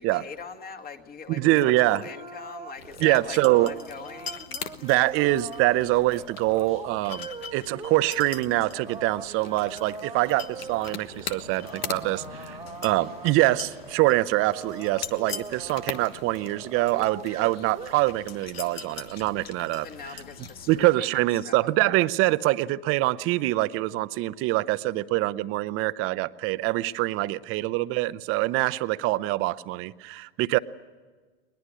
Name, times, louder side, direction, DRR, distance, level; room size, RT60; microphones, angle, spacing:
voice 1, 0.0-4.5 19.8-21.7 30.5-30.6, left 5 dB, 30° left, 2.2 m, -42 dB
sound 1, 1.3-17.9, right 5 dB, 15° right, 1.6 m, -42 dB
voice 2, 1.3-2.0 3.0-3.7 4.8-19.9 20.7-30.6, right 18 dB, 45° right, 0.8 m, -24 dB
sound 2, 2.8-20.9, left 6 dB, 85° left, 1.3 m, -41 dB
21.0 x 20.5 x 9.7 m
hypercardioid pair, 95°, 29 cm